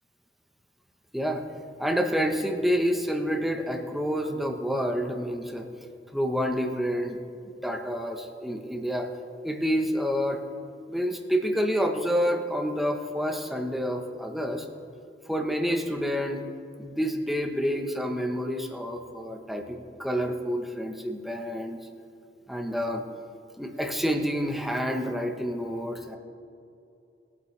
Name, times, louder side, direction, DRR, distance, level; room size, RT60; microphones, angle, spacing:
voice 1, 1.1-1.5 1.8-5.7 6.1-7.2 7.5-9.1 9.4-10.4 10.9-14.7 15.3-16.4 16.8-21.9 22.5-23.0 23.6-26.2, equal, ahead, 3 dB, 1.0 m, -28 dB
21.0 x 8.3 x 3.3 m, 2.6 s
head